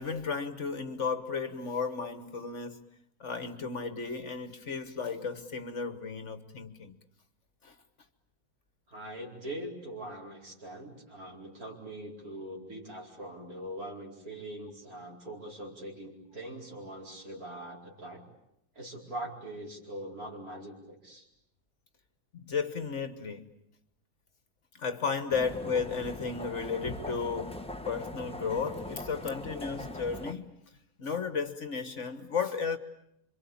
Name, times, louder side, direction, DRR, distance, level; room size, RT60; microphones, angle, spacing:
voice 1, 0.0-2.8 3.2-7.0 7.6-7.7 22.3-23.5 24.7-30.5 31.0-32.8, left 5 dB, 50° left, 1.6 m, -34 dB
voice 2, 8.9-18.2 18.7-21.3, right 1 dB, 65° right, 5.0 m, -42 dB
sound 1, 25.3-30.3, left 1 dB, 5° left, 1.1 m, -41 dB
27.0 x 24.5 x 8.6 m
omnidirectional pair, 1.7 m